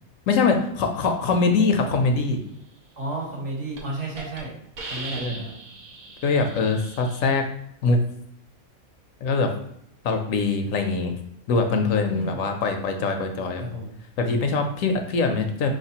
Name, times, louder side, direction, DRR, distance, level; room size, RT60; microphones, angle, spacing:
voice 1, 0.3-2.4 5.1-5.4 6.2-7.5 7.8-8.0 9.2-9.5 10.0-11.1 11.5-13.6 14.2-15.7, left 4 dB, 75° left, 5 dB, 0.9 m, -23 dB
voice 2, 3.0-4.5 4.9-5.5 12.1-12.4 13.6-13.9, right 2 dB, 60° right, -3 dB, 1.5 m, -32 dB
Hiss, 3.2-3.4 3.8-3.9 4.2-4.4 4.8-7.4, right 2 dB, 80° right, 1.3 m, -39 dB
4.7 x 3.2 x 2.8 m, 0.72 s
omnidirectional pair, 1.4 m